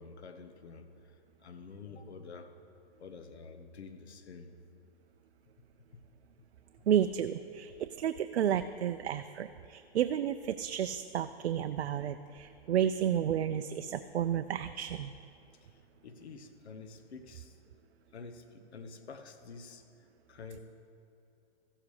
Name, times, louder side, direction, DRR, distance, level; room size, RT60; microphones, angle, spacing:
voice 1, 0.0-2.5 3.0-4.5 5.9-6.0 14.1-14.2 15.6-17.8 18.1-20.6, left 4 dB, 80° left, 7 dB, 1.2 m, -49 dB
voice 2, 6.9-7.7 8.0-15.1, right 9 dB, 80° right, 10 dB, 0.5 m, -31 dB
14.5 x 7.4 x 4.8 m, 2.7 s
hypercardioid pair, 150°, 32 cm